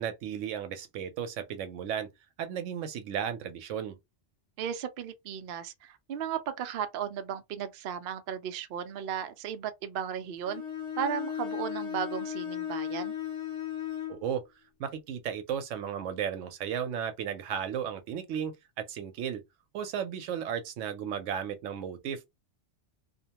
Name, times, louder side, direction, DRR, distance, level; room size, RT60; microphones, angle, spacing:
voice 1, 0.0-2.1 2.4-4.0 14.1-14.4 14.8-19.4 19.7-22.3, right 8 dB, 85° right, 0.9 m, -34 dB
voice 2, 4.6-10.6 11.0-13.1, right 8 dB, 60° right, 0.6 m, -35 dB
Bowed string instrument, 10.4-14.2, left 9 dB, 75° left, 1.1 m, -35 dB
2.6 x 2.1 x 2.8 m
omnidirectional pair, 1.2 m